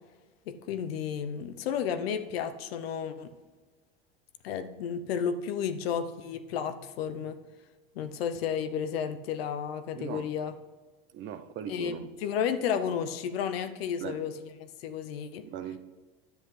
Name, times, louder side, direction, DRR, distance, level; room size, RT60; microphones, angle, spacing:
voice 1, 0.5-3.3 4.4-7.4 8.0-10.5 11.7-14.3 14.6-15.5, left 7 dB, 85° left, 10 dB, 0.8 m, -32 dB
voice 2, 9.9-10.3 11.1-12.1 14.0-14.2 15.4-15.8, right 9 dB, 40° right, 10 dB, 0.7 m, -39 dB
10.5 x 7.4 x 3.3 m, 1.3 s
supercardioid pair, 110°, 30 cm